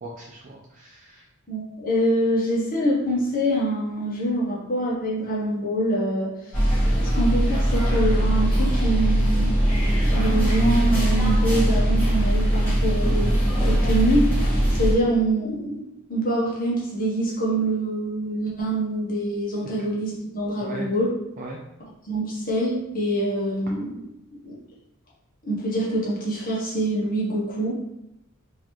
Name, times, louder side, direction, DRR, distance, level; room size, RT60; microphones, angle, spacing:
voice 1, 0.0-1.3 19.8-19.9 20.6-20.9 21.4-21.6, right 2 dB, 35° right, -2 dB, 0.4 m, -39 dB
voice 2, 1.5-6.3 7.0-9.5 10.0-13.3 13.6-14.3 14.7-15.8 16.1-21.1 22.0-23.9 24.4-24.6 25.4-27.8, right 1 dB, 40° left, -6 dB, 1.1 m, -25 dB
sound 1, 6.5-14.9, right 1 dB, 10° left, 1.4 m, -20 dB
3.9 x 2.8 x 3.1 m, 0.85 s
head